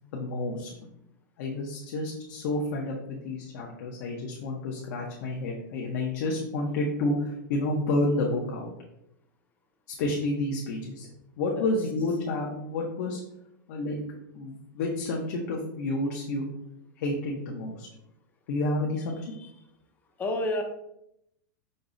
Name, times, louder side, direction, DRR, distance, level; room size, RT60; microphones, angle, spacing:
voice 1, 0.1-0.7 1.4-8.7 10.0-11.1 11.4-13.2 13.7-14.0 14.3-16.5 17.0-17.9 18.5-19.1, left 2 dB, 55° left, -2 dB, 0.7 m, -30 dB
voice 2, 20.2-20.6, left 1 dB, 15° left, 4 dB, 0.5 m, -29 dB
5.2 x 2.0 x 3.7 m, 0.80 s
supercardioid pair, 155°, 11 cm